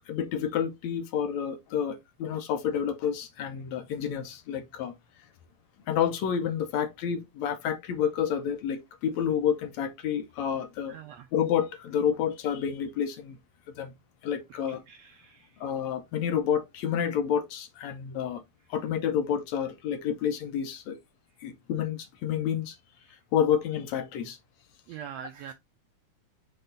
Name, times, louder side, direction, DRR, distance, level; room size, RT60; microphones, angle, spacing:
voice 1, 0.1-4.9 5.9-11.0 11.3-13.4 13.8-13.9 14.2-14.8 15.6-18.4 18.7-21.0 21.4-22.8 23.3-24.4, left 8 dB, 70° left, 1.9 m, -29 dB
voice 2, 10.9-11.3 14.9-15.5 24.9-25.5, right 8 dB, 90° right, 1.5 m, -43 dB
5.5 x 4.5 x 3.8 m
omnidirectional pair, 3.6 m